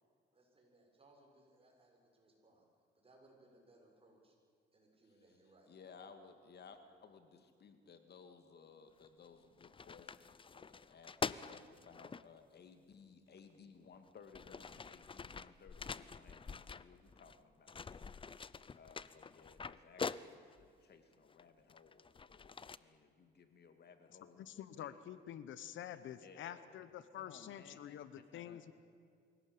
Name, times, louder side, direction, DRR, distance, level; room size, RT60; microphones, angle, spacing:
voice 1, 0.3-2.6 3.0-4.4 4.7-5.7, right 2 dB, 30° right, 0 dB, 7.0 m, -66 dB
voice 2, 5.7-18.1 18.7-24.5 24.8-24.9 26.2-26.7 27.2-28.6, left 5 dB, 55° left, 8 dB, 2.1 m, -60 dB
sound 1, 9.0-9.3 9.6-12.2 13.4-13.5 14.1-17.4 17.7-20.7 21.3-22.8, left 5 dB, 25° left, 0.6 m, -45 dB
voice 3, 24.4-28.7, left 10 dB, 75° left, 14 dB, 1.0 m, -48 dB
24.0 x 17.5 x 8.7 m, 2.2 s
cardioid pair, 90°, 20 cm